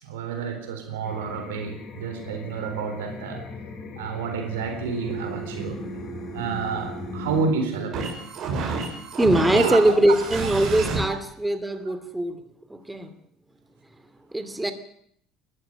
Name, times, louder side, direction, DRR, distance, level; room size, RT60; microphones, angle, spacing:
voice 1, 0.0-3.4 4.0-5.8 6.3-8.1 9.5-10.0 11.1-11.2, right 5 dB, 90° right, 7 dB, 4.0 m, -29 dB
sound 1, 1.0-7.5, left 4 dB, 55° left, 7.3 m, -38 dB
sound 2, 5.1-11.0, right 4 dB, 60° right, 6.4 m, -31 dB
voice 2, 9.2-12.4 12.7-13.1 14.3-14.7, right 1 dB, 10° right, 10 dB, 2.6 m, -22 dB
20.5 x 14.5 x 9.0 m, 0.67 s
supercardioid pair, 80°, 0 cm